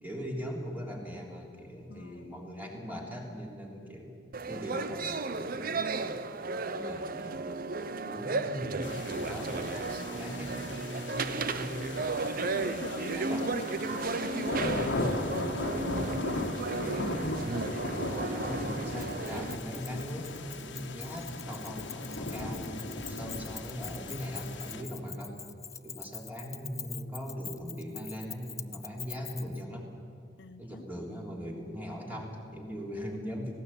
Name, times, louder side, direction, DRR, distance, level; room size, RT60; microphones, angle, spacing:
voice 1, 0.0-4.1 4.5-6.2 6.7-7.4 8.0-11.8 12.2-13.6 17.4-25.3 25.8-29.9 30.6-33.6, equal, 10° right, -1 dB, 3.5 m, -40 dB
voice 2, 1.9-2.4 12.2-16.0 30.4-30.8, left 3 dB, 65° left, 12 dB, 0.6 m, -44 dB
sound 1, 4.3-19.6, right 3 dB, 50° right, 0.8 m, -34 dB
sound 2, 8.8-24.8, left 2 dB, 80° left, 1.7 m, -37 dB
Keys jangling, 19.0-29.6, left 7 dB, 15° left, 0.5 m, -44 dB
18.5 x 17.0 x 8.8 m, 2.6 s
head